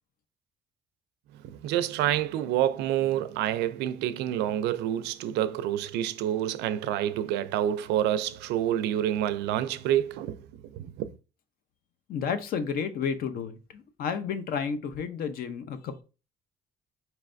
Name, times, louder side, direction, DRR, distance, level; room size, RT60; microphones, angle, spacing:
voice 1, 1.4-10.4 10.7-11.1, right 11 dB, 85° right, 0.4 m, -28 dB
voice 2, 12.1-16.0, left 6 dB, 60° left, 0.6 m, -31 dB
4.5 x 3.2 x 2.5 m
cardioid pair, 110°, 17 cm